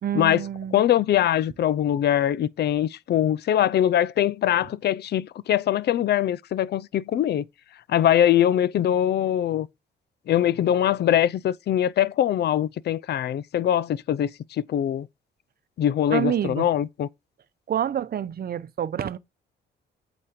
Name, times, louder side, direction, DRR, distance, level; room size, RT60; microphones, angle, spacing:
voice 1, 0.0-0.8 16.1-16.7 17.7-19.2, right 10 dB, 50° right, 0.8 m, -27 dB
voice 2, 0.7-7.4 7.9-9.7 10.3-15.1 15.8-17.1, left 11 dB, 55° left, 0.5 m, -22 dB
8.5 x 4.1 x 5.1 m
cardioid pair, 90°, 20 cm